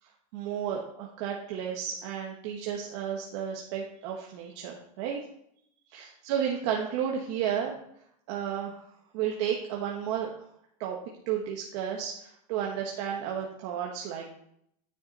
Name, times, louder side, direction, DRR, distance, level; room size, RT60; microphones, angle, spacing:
voice 1, 0.3-5.2 5.9-7.8 8.3-8.8 9.1-10.4 10.8-11.0 11.3-14.4, right 8 dB, 50° right, -1 dB, 1.2 m, -32 dB
9.7 x 5.9 x 4.1 m, 0.72 s
supercardioid pair, 165°, 19 cm